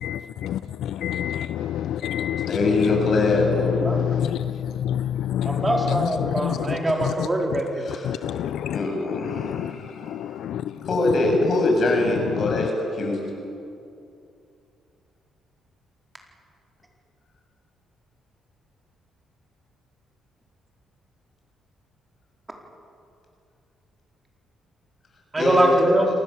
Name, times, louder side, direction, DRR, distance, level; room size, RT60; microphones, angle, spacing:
voice 1, 0.0-2.5 2.8-6.8 7.0-7.1 8.0-8.8 9.1-9.7 10.0-10.6 12.3-12.7, left 10 dB, 80° left, 12 dB, 0.5 m, -27 dB
voice 2, 2.5-3.7 7.9-8.1 8.7-10.1 10.9-12.7 13.0-13.2 25.4-25.6, left 2 dB, 55° left, 1 dB, 7.2 m, -23 dB
voice 3, 3.8-4.2 5.4-7.9 25.3-26.1, right 1 dB, 20° right, 0 dB, 4.4 m, -23 dB
28.0 x 19.5 x 7.2 m, 2.6 s
cardioid pair, 90°, 0 cm